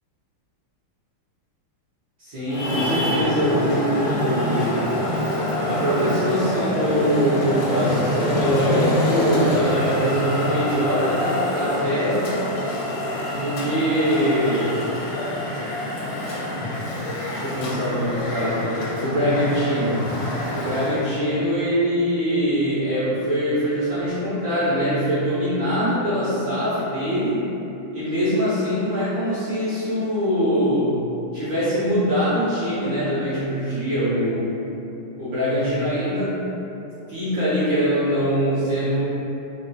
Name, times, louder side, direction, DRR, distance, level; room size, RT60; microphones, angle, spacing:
voice 1, 2.2-4.8 5.7-12.3 13.3-14.8 17.3-20.1 20.5-27.4 27.9-30.9 31.3-34.6 35.2-36.4 37.1-39.0, equal, 70° right, -13 dB, 0.7 m, -23 dB
Traffic noise roadway noise, 2.5-21.1, left 1 dB, 75° left, 1.2 m, -25 dB
3.2 x 2.8 x 2.2 m, 2.9 s
omnidirectional pair, 2.4 m